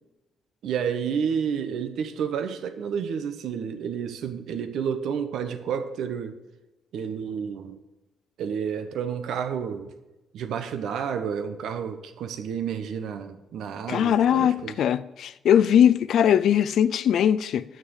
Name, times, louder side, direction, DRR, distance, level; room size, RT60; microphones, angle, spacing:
voice 1, 0.6-6.4 6.9-7.8 8.4-9.9 10.3-14.7, right 7 dB, 75° right, 1.0 m, -30 dB
voice 2, 13.9-17.6, left 9 dB, 70° left, 0.4 m, -20 dB
9.2 x 6.5 x 8.0 m
cardioid pair, 90°, 0 cm